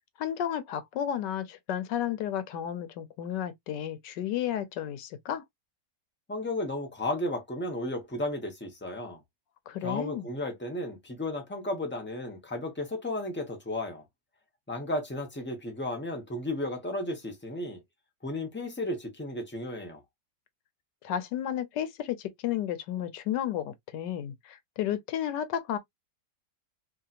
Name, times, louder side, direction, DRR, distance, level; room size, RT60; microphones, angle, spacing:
voice 1, 0.2-5.4 9.7-10.3 21.0-25.8, left 10 dB, 80° left, 1.3 m, -32 dB
voice 2, 6.3-9.2 9.8-14.0 14.7-17.8 18.2-20.0, left 1 dB, 15° left, 0.4 m, -34 dB
3.1 x 2.8 x 2.4 m
omnidirectional pair, 1.9 m